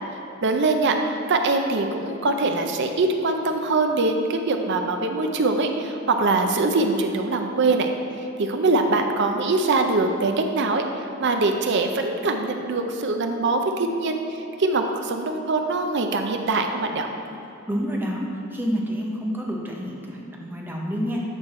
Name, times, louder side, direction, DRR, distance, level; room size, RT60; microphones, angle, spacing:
voice 1, 0.4-7.9 8.4-17.1, right 3 dB, 50° right, 5 dB, 0.5 m, -23 dB
voice 2, 17.7-21.2, equal, 10° right, -2 dB, 0.7 m, -28 dB
8.8 x 4.6 x 4.2 m, 2.9 s
head